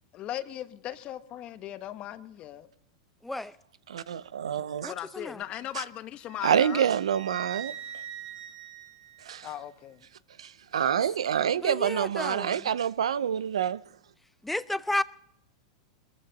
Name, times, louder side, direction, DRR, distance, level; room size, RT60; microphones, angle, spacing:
voice 1, 0.1-2.7 4.8-6.9 9.4-10.1, left 12 dB, 35° left, 1.1 m, -38 dB
voice 2, 3.2-3.5 4.8-5.4 11.6-12.7 14.4-15.0, left 1 dB, 5° left, 0.6 m, -32 dB
voice 3, 3.9-4.9 6.4-7.7 9.3-9.5 10.4-13.8, right 8 dB, 90° right, 0.5 m, -27 dB
Wind instrument woodwind instrument, 6.2-9.7, right 11 dB, 70° right, 4.1 m, -43 dB
21.5 x 14.5 x 4.0 m
hypercardioid pair, 120°, 3 cm